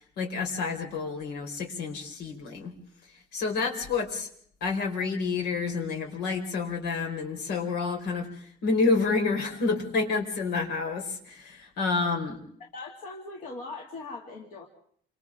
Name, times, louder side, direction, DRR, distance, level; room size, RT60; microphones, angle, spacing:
voice 1, 0.0-2.7 3.1-4.3 4.6-12.4, left 4 dB, 75° left, 3 dB, 4.9 m, -29 dB
voice 2, 12.6-14.7, left 3 dB, 55° left, 1 dB, 2.5 m, -40 dB
28.5 x 26.5 x 3.7 m, 0.62 s
cardioid pair, 180°, 17 cm